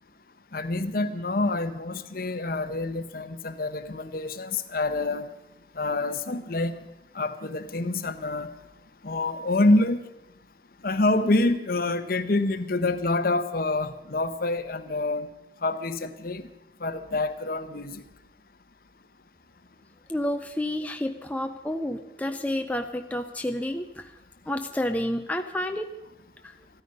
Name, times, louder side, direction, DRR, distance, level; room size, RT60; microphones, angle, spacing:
voice 1, 0.5-5.3 5.8-6.7 7.2-8.5 9.0-10.0 10.8-15.3 15.6-16.4 16.8-18.0, left 2 dB, 50° left, 0.9 m, -26 dB
voice 2, 20.1-24.1 24.5-25.9, left 1 dB, 10° left, 0.5 m, -30 dB
14.5 x 13.5 x 5.4 m
head